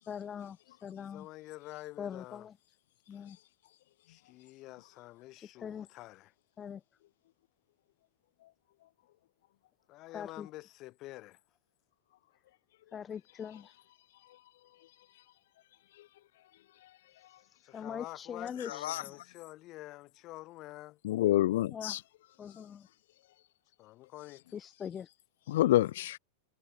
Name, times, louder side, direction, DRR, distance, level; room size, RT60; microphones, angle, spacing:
voice 1, 0.1-1.3 2.0-2.5 3.1-3.4 5.6-5.9 6.6-6.8 10.1-10.5 12.9-13.7 17.7-18.7 21.7-22.0 22.4-22.9 24.5-25.1, left 8 dB, 25° left, 1.3 m, -41 dB
voice 2, 1.0-2.5 3.1-3.3 4.1-6.3 9.9-11.4 17.6-21.0 23.8-24.4, left 18 dB, 40° left, 7.1 m, -48 dB
voice 3, 21.0-22.0 25.5-26.2, left 14 dB, 55° left, 0.4 m, -27 dB
figure-of-eight pair, 90°, 0 cm